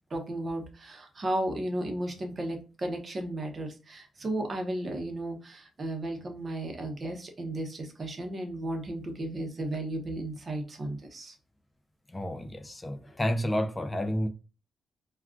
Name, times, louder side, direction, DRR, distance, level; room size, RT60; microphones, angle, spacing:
voice 1, 0.1-11.3, right 1 dB, 30° right, 0.7 m, -34 dB
voice 2, 12.1-14.3, equal, 15° left, 0.3 m, -30 dB
2.4 x 2.3 x 3.5 m
cardioid pair, 125°, 0 cm